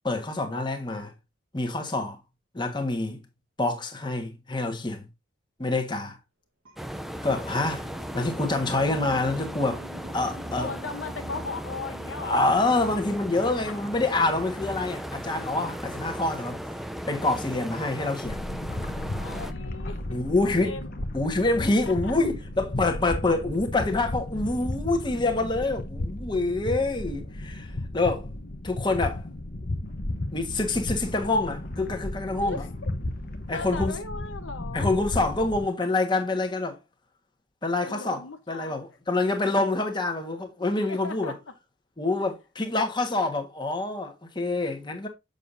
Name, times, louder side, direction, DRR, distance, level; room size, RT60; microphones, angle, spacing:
voice 1, 0.0-1.1 1.5-2.2 2.5-3.2 3.6-5.0 5.6-6.2 7.2-9.8 10.1-10.7 12.2-16.6 17.1-18.4 20.1-20.8 21.1-28.3 28.6-29.2 30.3-32.6 33.5-33.9 34.7-36.8 37.6-38.2 38.5-41.3 42.0-45.1, left 2 dB, 25° left, 1.4 m, -26 dB
sound 1, 6.6-11.4, equal, 85° right, 2.0 m, -46 dB
sound 2, 6.8-19.5, equal, ahead, 0.5 m, -37 dB
voice 2, 10.6-12.5 13.7-13.8 19.2-20.9 21.6-22.2 32.3-32.9 33.5-34.9 37.8-38.8 40.7-41.5, left 4 dB, 80° left, 0.9 m, -38 dB
sound 3, 18.2-35.7, left 1 dB, 50° left, 0.9 m, -34 dB
7.1 x 6.6 x 2.6 m
head